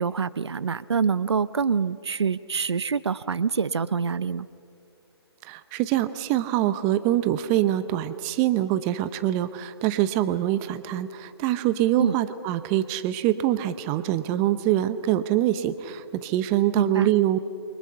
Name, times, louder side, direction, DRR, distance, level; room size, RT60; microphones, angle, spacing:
voice 1, 0.0-4.5 12.0-12.2 16.7-17.1, right 6 dB, 80° right, 18 dB, 0.7 m, -25 dB
voice 2, 5.4-17.4, right 13 dB, 20° right, 13 dB, 0.8 m, -24 dB
29.5 x 24.0 x 5.7 m, 2.5 s
hypercardioid pair, 145°, 14 cm